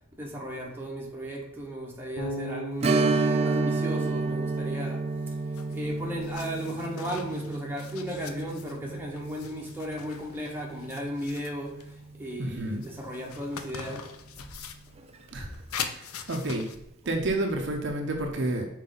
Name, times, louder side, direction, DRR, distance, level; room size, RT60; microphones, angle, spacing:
voice 1, 0.2-5.4 5.7-14.1, equal, 10° right, 1.1 m, -36 dB
Bass guitar, 2.2-5.2, equal, 25° left, 1.2 m, -39 dB
Strum, 2.8-12.0 12.3-12.4 15.0-15.1 15.6-15.7, right 3 dB, 30° right, 0.4 m, -30 dB
sound 1, 5.5-16.8, left 7 dB, 80° left, 0.6 m, -43 dB
voice 2, 12.4-12.8 15.3-16.7 17.1-18.7, right 1 dB, 55° right, 0.8 m, -30 dB
5.9 x 4.5 x 3.8 m
head